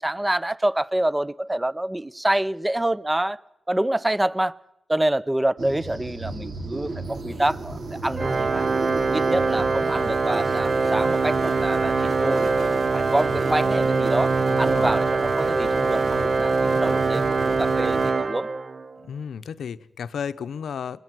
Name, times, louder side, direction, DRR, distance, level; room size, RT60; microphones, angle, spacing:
voice 1, 0.0-3.4 3.7-4.6 4.9-8.7 9.1-18.5, right 1 dB, 15° right, 0.7 m, -27 dB
sound 1, 5.6-18.1, right 2 dB, 70° right, 3.1 m, -34 dB
Organ, 8.2-19.0, right 4 dB, 50° right, 0.8 m, -23 dB
voice 2, 14.5-15.0 19.0-21.0, left 7 dB, 85° left, 0.6 m, -33 dB
21.5 x 20.5 x 6.1 m
cardioid pair, 50°, 0 cm